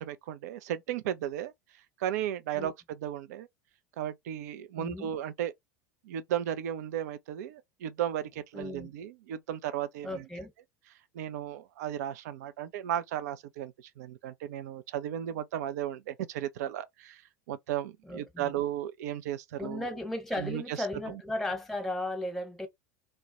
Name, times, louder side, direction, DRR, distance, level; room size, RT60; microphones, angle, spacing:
voice 1, 0.0-1.5 2.0-3.5 4.0-5.5 6.0-10.2 11.1-17.2 17.5-19.9 20.3-21.2, right 11 dB, 70° right, 0.4 m, -35 dB
voice 2, 4.8-5.1 8.5-8.9 10.0-10.5 18.0-18.5 19.6-22.7, left 1 dB, ahead, 1.0 m, -35 dB
2.3 x 2.1 x 2.8 m
hypercardioid pair, 80°, 9 cm